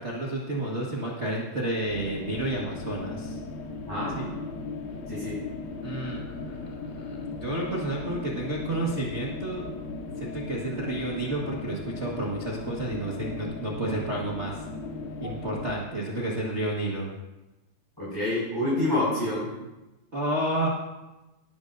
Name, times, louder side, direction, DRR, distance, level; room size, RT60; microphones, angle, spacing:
voice 1, 0.0-3.4 4.1-4.3 5.8-9.6 10.2-14.6 15.2-17.1 20.1-20.7, right 1 dB, 80° right, -4 dB, 0.6 m, -31 dB
sound 1, 1.9-15.8, left 3 dB, 90° left, 3.2 m, -37 dB
voice 2, 3.9-4.2 5.1-5.4 15.2-15.3 18.0-19.5, left 1 dB, 5° left, -10 dB, 5.1 m, -27 dB
19.5 x 12.0 x 2.6 m, 1.0 s
omnidirectional pair, 4.3 m